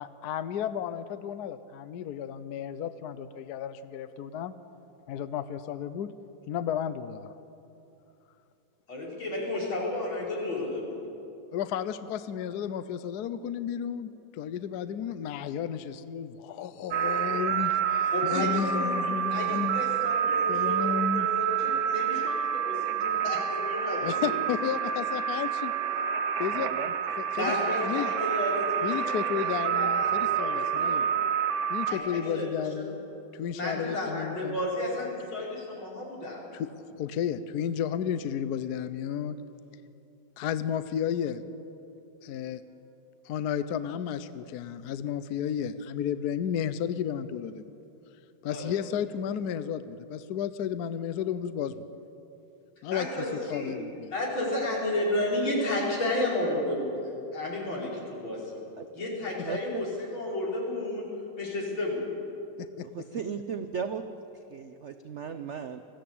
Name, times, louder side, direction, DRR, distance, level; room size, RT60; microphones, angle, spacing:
voice 1, 0.0-4.5 5.1-6.1 6.5-7.3 11.5-19.8 20.5-21.3 24.0-25.7 26.4-27.5 27.8-28.1 28.8-31.1 31.7-33.0 33.3-34.6 36.5-36.7 37.0-39.4 40.4-41.4 42.2-42.6 43.2-47.6 48.4-51.8 52.8-54.1 62.6-62.9, left 8 dB, 65° left, 13 dB, 1.1 m, -33 dB
voice 2, 8.9-11.0 18.1-24.3 27.4-31.0 31.9-32.9 33.5-36.4 48.4-48.7 52.9-53.7 54.1-58.6 58.9-61.0 61.4-62.0, left 1 dB, 85° left, -4 dB, 5.5 m, -32 dB
sound 1, 16.9-31.9, right 8 dB, 65° right, 1.4 m, -28 dB
voice 3, 26.5-26.9 58.8-58.9 59.4-59.9 62.8-65.8, right 6 dB, 85° right, 9 dB, 0.6 m, -36 dB
20.5 x 15.5 x 8.5 m, 2.8 s
omnidirectional pair, 2.2 m